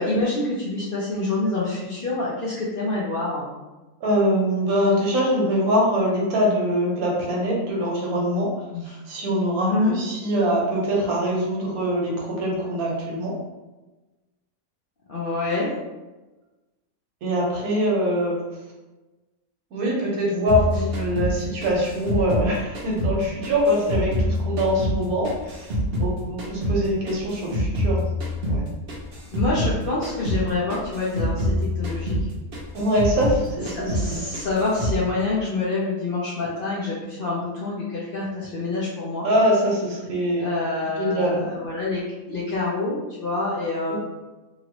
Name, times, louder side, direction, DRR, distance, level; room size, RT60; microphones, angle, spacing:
voice 1, 0.0-3.5 8.7-9.0 9.6-9.9 15.1-15.7 29.3-32.3 33.7-39.3 40.3-44.0, left 3 dB, 55° left, -7 dB, 0.6 m, -26 dB
voice 2, 4.0-8.5 9.1-13.4 17.2-18.4 19.7-25.7 26.0-28.0 28.5-28.7 32.7-34.2 39.2-40.5 41.0-41.4 43.9-44.0, equal, 80° right, -2 dB, 1.3 m, -23 dB
sound 1, 20.5-23.2 23.4-26.1 26.4-29.8 30.0-30.4 30.7-33.4 33.7-34.1 34.3-35.0, equal, 55° right, 0.8 m, -26 dB
2.9 x 2.6 x 2.9 m, 1.1 s
omnidirectional pair, 1.5 m